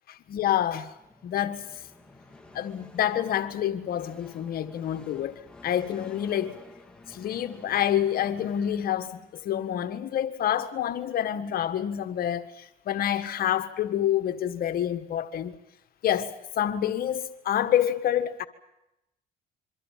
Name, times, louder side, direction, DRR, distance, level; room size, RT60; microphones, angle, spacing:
voice 1, 0.1-0.9 1.2-1.7 2.5-6.6 7.1-15.5 16.0-18.5, left 10 dB, 60° left, 1.6 m, -28 dB
sound 1, 0.8-9.5, left 2 dB, 5° left, 3.3 m, -52 dB
27.0 x 24.0 x 7.4 m
cardioid pair, 110°, 17 cm